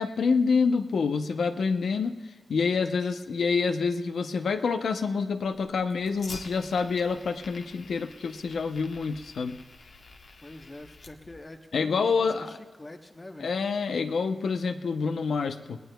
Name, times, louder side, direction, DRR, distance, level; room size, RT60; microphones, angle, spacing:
voice 1, 0.0-2.1 2.5-9.6 11.7-12.5 13.4-15.8, left 5 dB, 85° left, 7 dB, 0.6 m, -27 dB
Fire, 5.4-11.4, left 3 dB, 60° left, 1.1 m, -48 dB
voice 2, 10.4-13.6, left 2 dB, 20° left, 5 dB, 0.8 m, -45 dB
30.0 x 18.0 x 2.2 m, 1.3 s
wide cardioid pair, 145°, 0 cm